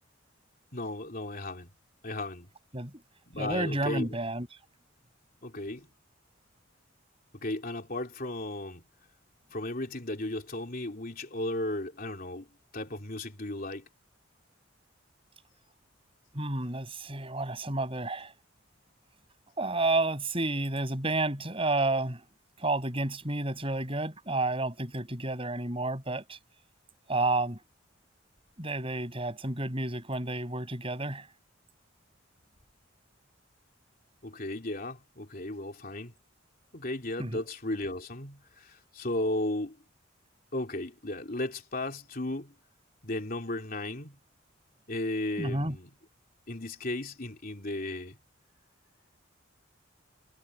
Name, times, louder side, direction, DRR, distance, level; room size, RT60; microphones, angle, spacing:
voice 1, 0.7-1.7 2.0-2.5 3.3-4.2 5.4-5.9 7.4-8.9 9.5-13.8 34.2-36.1 36.7-39.8 40.5-42.5 43.0-44.2 44.9-45.9 46.5-48.2, left 1 dB, 45° left, 3.4 m, -35 dB
voice 2, 3.4-4.5 16.3-18.3 19.6-22.2 22.6-26.4 27.1-27.6 28.6-31.3 37.2-37.4 45.4-45.7, right 2 dB, 30° right, 6.3 m, -30 dB
head